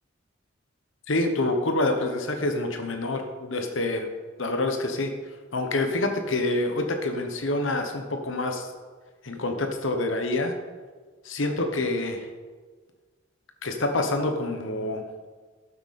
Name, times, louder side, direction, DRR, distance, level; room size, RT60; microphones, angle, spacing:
voice 1, 1.1-4.1 4.4-5.1 5.5-8.7 9.2-10.5 11.3-12.2 13.6-15.0, left 2 dB, 75° left, 5 dB, 1.1 m, -27 dB
12.5 x 8.1 x 4.2 m, 1.4 s
head